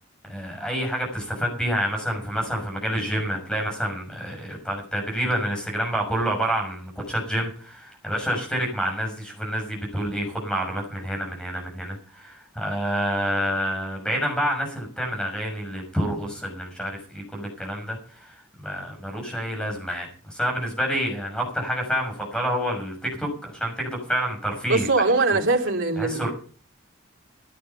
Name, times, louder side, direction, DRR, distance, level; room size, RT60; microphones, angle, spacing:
voice 1, 0.3-24.9 26.0-26.3, equal, 5° left, 1 dB, 6.1 m, -28 dB
voice 2, 24.7-26.3, right 3 dB, 75° right, 1 dB, 3.6 m, -22 dB
15.5 x 11.0 x 5.6 m, 0.41 s
head